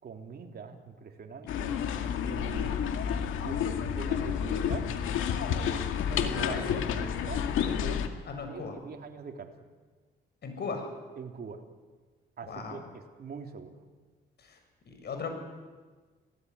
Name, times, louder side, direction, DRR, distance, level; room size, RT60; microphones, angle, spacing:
voice 1, 0.0-1.7 2.2-2.8 3.4-4.9 5.5-7.4 7.8-8.0 8.5-9.5 11.2-11.6 12.4-13.8, right 6 dB, 50° right, 4 dB, 3.5 m, -43 dB
sound 1, 1.5-8.1, left 8 dB, 85° left, 2.1 m, -30 dB
voice 2, 6.5-6.8 8.3-8.7 10.4-10.9 12.5-12.8 14.4-14.6 14.9-15.3, left 4 dB, 55° left, 5 dB, 7.5 m, -37 dB
27.0 x 18.0 x 9.9 m, 1.4 s
cardioid pair, 90°, 20 cm